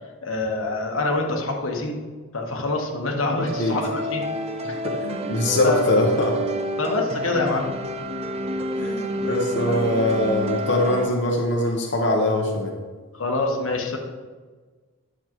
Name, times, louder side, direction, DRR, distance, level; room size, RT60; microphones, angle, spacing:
voice 1, 0.2-1.9 2.3-4.2 5.6-5.9 6.8-7.7 9.7-9.8 13.1-14.0, left 2 dB, 90° left, 1 dB, 1.3 m, -25 dB
sound 1, 3.4-11.1, equal, 30° right, 0.5 m, -29 dB
voice 2, 4.6-6.4 8.8-12.7, left 1 dB, 60° left, 0 dB, 0.9 m, -23 dB
10.0 x 7.1 x 3.0 m, 1.4 s
head